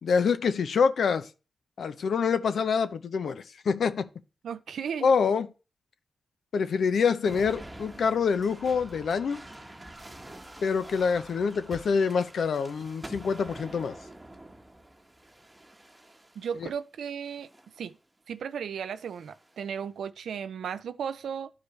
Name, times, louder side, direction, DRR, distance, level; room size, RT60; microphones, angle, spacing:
voice 1, 0.0-1.3 1.8-4.1 5.0-5.5 6.5-9.4 10.6-14.0 16.6-16.7, left 5 dB, 80° left, 0.6 m, -26 dB
voice 2, 4.4-5.1 16.4-17.5 17.8-18.0 18.3-21.5, right 7 dB, 90° right, 0.4 m, -35 dB
sound 1, 7.3-16.6 17.3-17.8 18.9-19.6, right 1 dB, 20° right, 1.0 m, -47 dB
12.0 x 4.8 x 3.1 m
cardioid pair, 55°, 0 cm